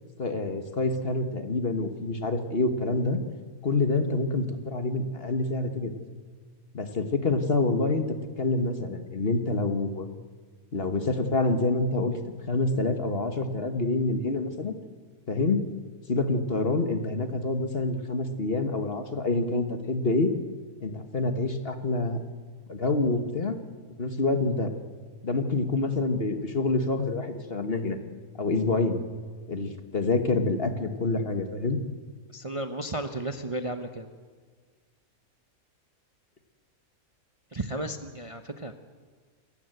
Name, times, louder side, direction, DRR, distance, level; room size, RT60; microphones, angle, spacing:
voice 1, 0.2-3.2 3.6-5.9 6.7-8.1 8.4-10.1 10.7-12.2 12.5-14.7 15.3-15.6 16.1-20.3 20.8-22.2 22.7-23.6 24.0-24.7 25.2-28.0 28.4-29.0 29.5-31.8, left 3 dB, 40° left, 7 dB, 1.6 m, -27 dB
voice 2, 32.3-34.1 37.5-38.7, right 1 dB, 25° right, 6 dB, 0.9 m, -34 dB
27.5 x 15.0 x 7.9 m, 1.5 s
omnidirectional pair, 1.5 m